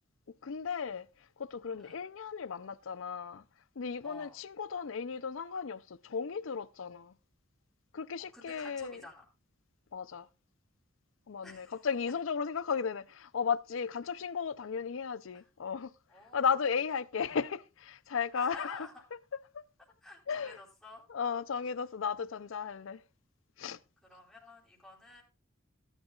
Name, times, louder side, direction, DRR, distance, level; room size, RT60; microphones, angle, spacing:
voice 1, 0.4-1.1 1.4-3.4 3.8-7.1 7.9-9.0 9.9-10.3 11.3-15.9 16.3-18.9 19.5-19.6 20.3-20.6 21.1-23.0 23.6-23.8, left 6 dB, 70° left, 0.5 m, -35 dB
voice 2, 4.0-4.4 8.3-9.2 11.4-11.8 15.3-15.4 16.1-16.5 18.3-18.9 20.0-21.0 24.0-25.2, left 2 dB, 5° left, 3.4 m, -51 dB
17.0 x 11.0 x 2.4 m
head